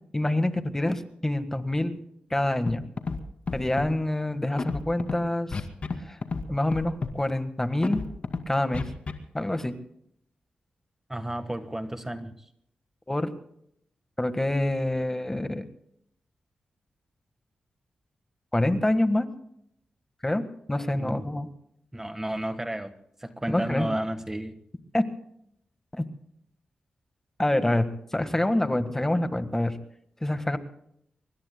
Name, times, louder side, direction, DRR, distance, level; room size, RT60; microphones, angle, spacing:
voice 1, 0.1-2.0 2.3-2.8 3.5-5.6 6.0-6.2 6.5-8.1 8.5-8.9 9.3-9.7 13.1-13.3 14.2-15.6 18.5-19.3 20.2-20.4 20.7-21.5 23.5-23.9 24.9-25.0 26.0-26.1 27.4-29.8 30.2-30.6, left 1 dB, 15° left, 9 dB, 1.5 m, -26 dB
Scratching (performance technique), 2.7-2.8 3.0-3.2 3.5-3.9 4.6-5.1 5.5-6.0 6.2-6.4 6.7-7.1 7.8-8.4 8.7-9.1, left 4 dB, 50° left, 2.3 m, -30 dB
voice 2, 11.1-12.3 20.9-21.2 21.9-22.9 23.2-24.6, right 1 dB, 15° right, 9 dB, 1.4 m, -32 dB
25.5 x 23.5 x 2.2 m, 0.70 s
cardioid pair, 75°, 3 cm